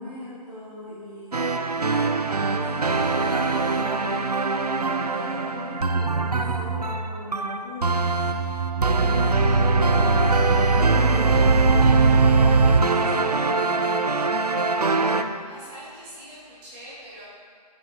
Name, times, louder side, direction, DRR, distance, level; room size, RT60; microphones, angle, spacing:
voice 1, 0.0-8.1 8.9-14.5, left 1 dB, 15° left, -13 dB, 1.9 m, -39 dB
sound 1, 1.3-15.2, right 3 dB, 70° right, 0.7 m, -21 dB
voice 2, 15.4-17.2, equal, 15° right, -11 dB, 2.9 m, -43 dB
9.9 x 9.6 x 4.0 m, 2.1 s
figure-of-eight pair, 150°, 21 cm